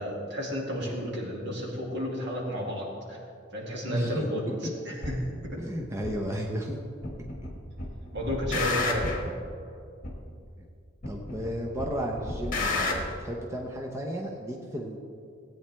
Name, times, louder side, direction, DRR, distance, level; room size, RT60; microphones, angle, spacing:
voice 1, 0.0-3.2 3.5-4.4 4.8-5.6 8.1-9.3, equal, 55° right, -2 dB, 2.3 m, -32 dB
voice 2, 3.9-4.5 5.6-6.8 8.5-8.6 11.1-15.0, equal, 15° right, 0 dB, 0.8 m, -33 dB
sound 1, 5.0-5.2 6.0-6.1 7.0-7.5 7.8-9.3 10.0-10.1 11.0-11.5 11.8-13.0, left 2 dB, 45° left, 1.5 m, -30 dB
16.5 x 8.8 x 3.4 m, 2.3 s
head